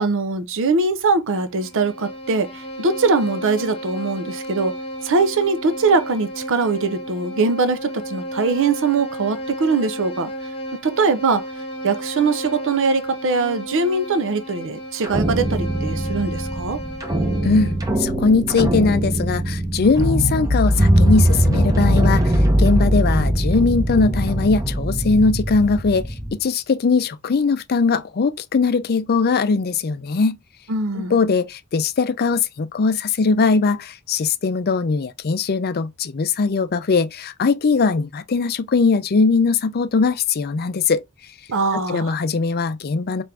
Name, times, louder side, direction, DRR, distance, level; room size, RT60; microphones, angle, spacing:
voice 1, 0.0-4.7 5.0-10.3 10.8-11.4 11.8-16.8 30.7-31.2 41.5-42.1, right 4 dB, 60° right, 0.6 m, -21 dB
Bowed string instrument, 1.3-17.9, equal, 25° left, 1.0 m, -33 dB
sound 1, 15.0-26.3, right 1 dB, 15° right, 0.7 m, -20 dB
voice 2, 17.4-22.3 22.6-30.4 31.0-41.0 41.7-43.2, left 4 dB, 45° left, 0.5 m, -20 dB
4.5 x 2.6 x 3.3 m
head